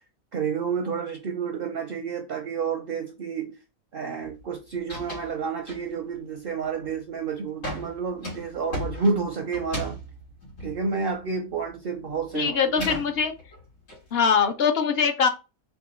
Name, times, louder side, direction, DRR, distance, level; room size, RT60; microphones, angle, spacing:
voice 1, 0.3-3.5 3.9-10.0 10.6-12.9, right 5 dB, 60° right, 0.6 m, -30 dB
sound 1, 4.2-4.5 4.8-5.3 5.7-6.2 6.6-7.1 7.6-11.7 12.0-14.0, equal, 90° left, 2.4 m, -37 dB
voice 2, 12.3-13.3 14.1-15.3, left 6 dB, 60° left, 0.6 m, -22 dB
4.3 x 2.3 x 4.2 m
omnidirectional pair, 1.5 m